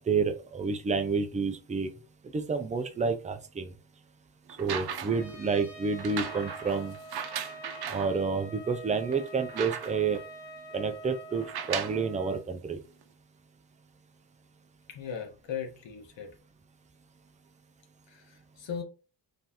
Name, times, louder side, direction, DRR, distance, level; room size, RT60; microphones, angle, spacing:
voice 1, 0.0-1.9 2.3-3.7 4.6-7.0 7.9-10.2 10.7-12.8, right 5 dB, 20° right, 7 dB, 0.4 m, -29 dB
sound 1, 4.5-5.3 6.0-8.1 8.7-8.8 9.1-10.2 11.4-12.1 13.0-13.1, right 8 dB, 60° right, 0.7 m, -37 dB
Trumpet, 5.1-12.4, right 1 dB, 65° left, 1.4 m, -46 dB
voice 2, 14.9-16.3 18.1-18.8, left 7 dB, 85° left, 4 dB, 1.4 m, -38 dB
5.4 x 3.3 x 2.9 m, 0.34 s
wide cardioid pair, 165°, 43 cm